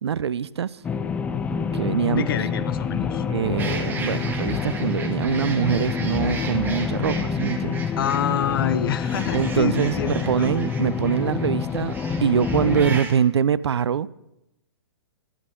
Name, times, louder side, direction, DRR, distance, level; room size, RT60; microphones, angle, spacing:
voice 1, 0.0-0.8 1.7-2.3 3.3-7.8 9.3-14.1, right 8 dB, 75° right, 0.4 m, -24 dB
sound 1, 0.8-13.0, left 6 dB, 10° left, 0.3 m, -27 dB
voice 2, 2.1-3.2 8.0-10.1 10.4-10.5, left 9 dB, 55° left, 0.8 m, -26 dB
sound 2, 3.6-13.2, right 4 dB, 15° right, 1.2 m, -37 dB
12.5 x 10.5 x 3.7 m
hypercardioid pair, 125°, 14 cm